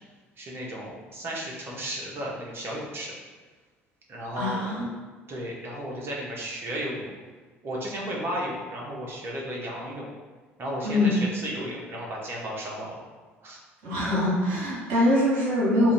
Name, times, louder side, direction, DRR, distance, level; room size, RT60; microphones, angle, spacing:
voice 1, 0.4-3.1 4.1-4.7 5.3-7.1 7.6-10.1 10.6-13.0 13.4-13.6, equal, 35° right, -3 dB, 1.0 m, -34 dB
voice 2, 4.3-4.9 10.8-11.1 13.8-15.9, left 1 dB, 60° right, -6 dB, 1.5 m, -23 dB
3.0 x 2.6 x 4.1 m, 1.4 s
figure-of-eight pair, 60°, 7 cm